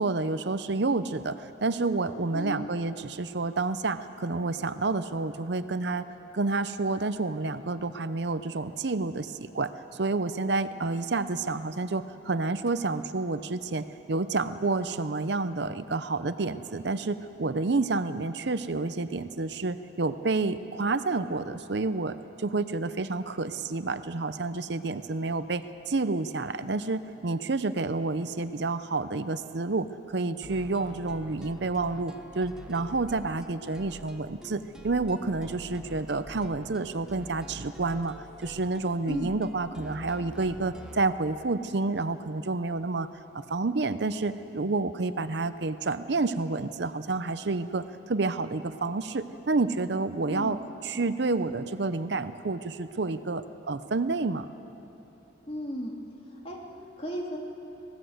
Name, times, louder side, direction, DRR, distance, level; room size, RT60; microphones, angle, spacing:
voice 1, 0.0-6.1 6.3-38.1 38.4-43.1 43.3-54.5, right 3 dB, 60° right, 11 dB, 0.7 m, -29 dB
voice 2, 2.3-2.7 39.1-39.3 50.3-50.6 55.5-55.9 56.3-57.4, equal, 30° left, -1 dB, 2.7 m, -35 dB
sound 1, 30.4-41.1, equal, 5° right, 1.2 m, -46 dB
25.5 x 18.0 x 7.9 m, 3.0 s
head